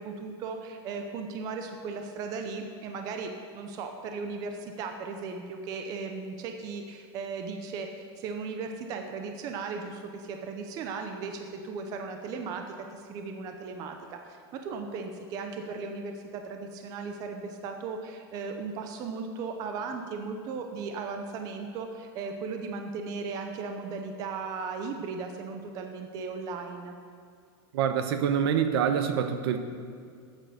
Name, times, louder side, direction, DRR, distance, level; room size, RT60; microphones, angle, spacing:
voice 1, 0.0-26.9, right 4 dB, 25° right, 4 dB, 0.6 m, -37 dB
voice 2, 27.7-29.6, right 8 dB, 65° right, 8 dB, 0.9 m, -26 dB
10.5 x 7.8 x 6.6 m, 2.2 s
supercardioid pair, 175°, 14 cm